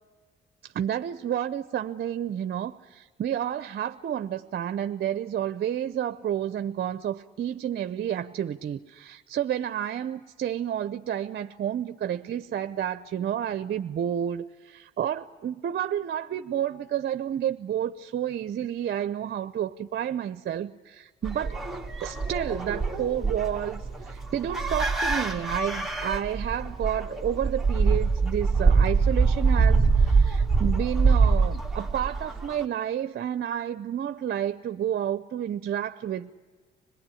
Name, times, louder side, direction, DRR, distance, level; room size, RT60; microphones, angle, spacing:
voice 1, 0.6-21.6 22.0-36.3, right 10 dB, 55° right, 11 dB, 0.7 m, -30 dB
sound 1, 21.2-32.6, right 4 dB, ahead, 2.3 m, -24 dB
26.0 x 19.0 x 10.0 m, 1.4 s
cardioid pair, 90°, 20 cm